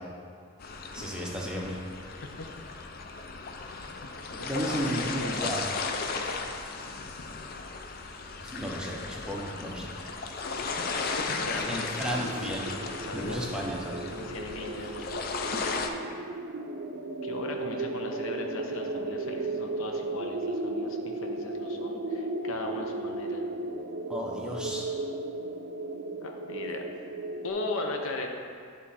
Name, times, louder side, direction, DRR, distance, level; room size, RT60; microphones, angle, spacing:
sound 1, 0.6-15.9, left 4 dB, 45° left, 0.4 m, -35 dB
voice 1, 0.9-1.8 4.3-5.6 8.4-9.9 11.7-12.6 13.1-14.0 24.1-24.9, equal, 5° right, -3 dB, 0.7 m, -33 dB
voice 2, 4.0-4.7 5.1-5.4 11.2-11.9 12.9-13.7 14.1-15.1 17.2-23.4 26.2-26.8 27.4-28.3, left 2 dB, 80° left, 3 dB, 0.7 m, -38 dB
sound 2, 12.1-27.5, right 2 dB, 85° right, 0.5 m, -35 dB
9.5 x 3.7 x 4.2 m, 2.2 s
head